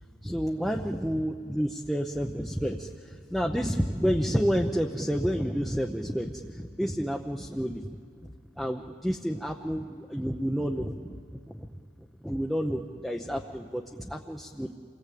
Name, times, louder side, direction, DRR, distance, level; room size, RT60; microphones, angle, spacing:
voice 1, 0.2-7.9 8.6-11.7 12.2-14.7, equal, ahead, 1 dB, 0.8 m, -30 dB
28.5 x 20.5 x 8.5 m, 2.2 s
head